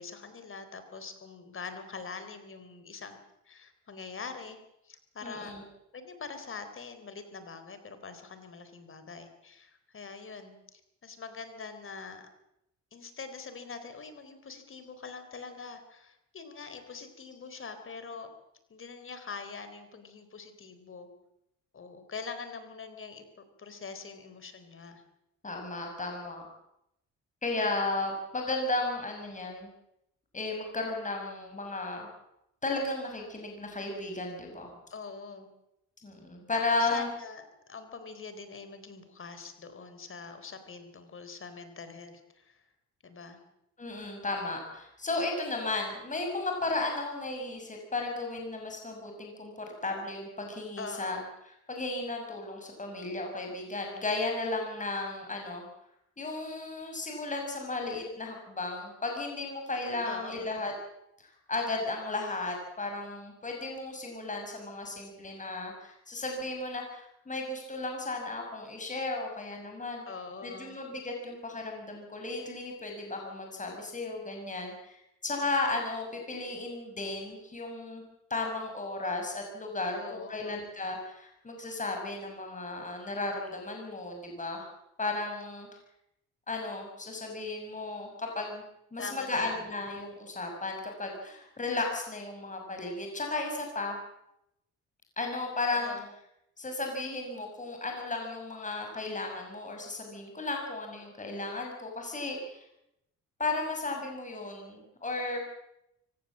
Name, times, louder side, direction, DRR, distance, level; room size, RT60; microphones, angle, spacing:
voice 1, 0.0-3.2 3.4-5.5 5.9-12.3 12.9-18.3 18.7-21.1 21.7-25.0 34.9-35.5 36.5-42.6 43.0-43.4 50.8-51.3 60.0-60.6 70.1-70.7 80.0-80.6 89.0-89.7 95.7-96.1, left 4 dB, 45° left, 9 dB, 3.9 m, -44 dB
voice 2, 5.2-5.6 25.4-26.4 27.4-29.7 30.3-32.1 32.6-34.7 36.0-37.1 43.8-51.2 51.7-55.7 56.2-60.7 61.2-70.0 70.4-78.0 78.3-84.7 85.0-85.7 86.5-88.6 88.9-94.0 95.2-95.9 96.6-102.6 103.4-105.6, left 2 dB, 25° left, 2 dB, 6.4 m, -34 dB
24.0 x 18.0 x 7.5 m, 0.81 s
cardioid pair, 90°, 30 cm